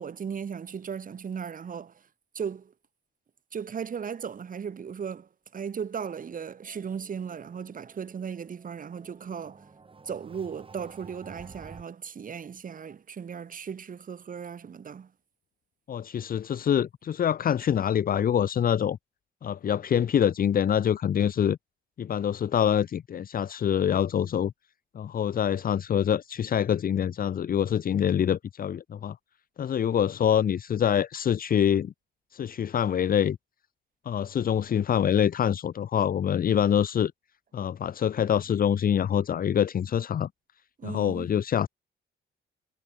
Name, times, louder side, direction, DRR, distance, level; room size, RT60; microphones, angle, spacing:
voice 1, 0.0-1.9 2.3-2.7 3.5-9.7 10.1-15.1 40.8-41.3, right 7 dB, 45° right, 2.0 m, -36 dB
sound 1, 6.6-11.8, right 4 dB, 25° right, 1.9 m, -52 dB
voice 2, 15.9-19.0 19.4-21.6 22.0-24.5 24.9-29.2 29.6-31.9 32.3-33.4 34.1-37.1 37.5-40.3 40.8-41.7, left 9 dB, 45° left, 0.8 m, -25 dB
cardioid pair, 90°, 20 cm